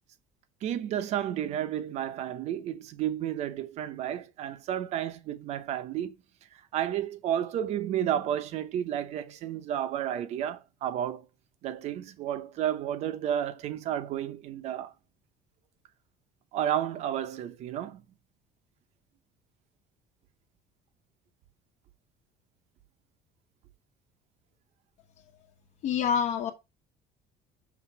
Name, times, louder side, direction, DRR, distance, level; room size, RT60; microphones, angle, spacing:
voice 1, 0.6-6.1 6.7-11.3 11.6-14.9 16.5-18.0, right 10 dB, 50° right, 0.8 m, -31 dB
voice 2, 25.8-26.5, left 8 dB, 50° left, 1.2 m, -26 dB
6.1 x 3.7 x 5.8 m
cardioid pair, 170°, 15 cm